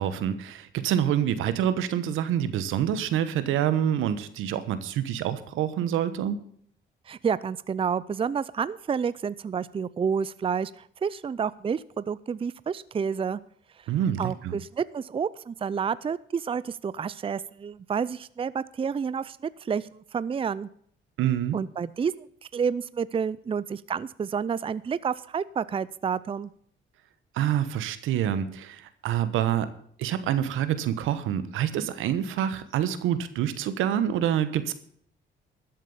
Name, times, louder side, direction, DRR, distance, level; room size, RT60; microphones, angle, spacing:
voice 1, 0.0-6.4 13.9-14.5 21.2-21.6 27.3-29.7 30.0-34.7, right 10 dB, 90° right, 13 dB, 1.2 m, -27 dB
voice 2, 7.1-13.4 14.2-20.7 21.5-22.3 22.5-26.5, right 6 dB, 25° right, 18 dB, 0.5 m, -29 dB
13.0 x 7.5 x 7.1 m, 0.63 s
cardioid pair, 90°, 20 cm